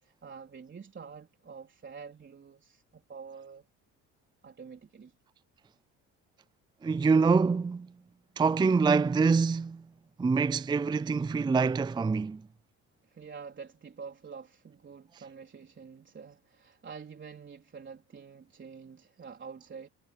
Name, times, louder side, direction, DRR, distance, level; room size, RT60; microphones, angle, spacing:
voice 1, 0.0-3.6 4.4-5.1 13.1-19.9, right 6 dB, 35° right, 4.0 m, -47 dB
voice 2, 6.8-7.9 8.4-9.8 10.2-12.4, right 4 dB, 15° right, 0.5 m, -25 dB
supercardioid pair, 90°, 34 cm